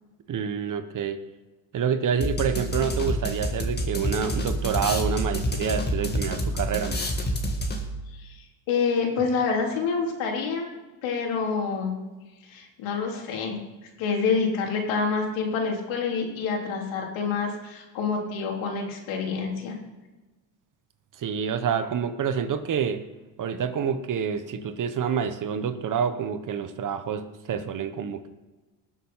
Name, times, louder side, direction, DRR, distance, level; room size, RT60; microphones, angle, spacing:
voice 1, 0.3-1.2 1.7-7.0 21.2-23.0 23.4-28.3, right 7 dB, 40° right, 10 dB, 1.2 m, -27 dB
sound 1, 2.2-8.1, equal, 20° left, 2.3 m, -28 dB
voice 2, 8.2-10.7 11.0-12.0 12.5-13.6 14.0-19.8, left 5 dB, 75° left, 0 dB, 3.7 m, -27 dB
19.5 x 7.4 x 5.7 m, 1.2 s
cardioid pair, 120°, 47 cm